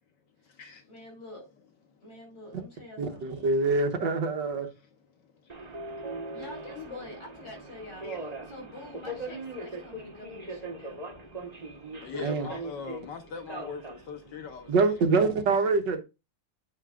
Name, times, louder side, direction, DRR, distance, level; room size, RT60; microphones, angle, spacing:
voice 1, 0.9-1.5 2.0-3.2 6.3-8.1 8.5-11.0, left 1 dB, 40° left, 5.5 m, -46 dB
voice 2, 3.0-4.7 12.2-12.5 14.7-16.0, right 3 dB, 75° right, 1.8 m, -25 dB
Subway metro underground, 5.5-15.2, right 2 dB, 25° right, 1.2 m, -40 dB
voice 3, 12.0-15.0, left 6 dB, 70° left, 1.6 m, -41 dB
9.2 x 8.7 x 2.5 m
omnidirectional pair, 2.0 m